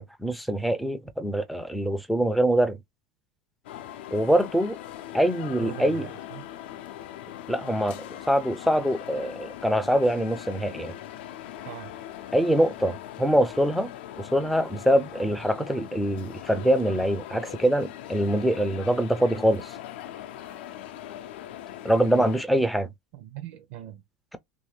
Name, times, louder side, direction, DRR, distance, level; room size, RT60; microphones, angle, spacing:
voice 1, 0.0-2.8 4.1-4.8 5.1-6.1 7.5-10.9 12.3-13.9 14.2-19.7 21.8-22.9, equal, ahead, 0.4 m, -24 dB
sound 1, 3.6-22.4, left 12 dB, 85° left, 0.5 m, -41 dB
voice 2, 5.6-6.5 11.6-11.9 23.1-24.0, right 13 dB, 60° right, 0.6 m, -40 dB
3.0 x 2.6 x 3.2 m
supercardioid pair, 170°, 6 cm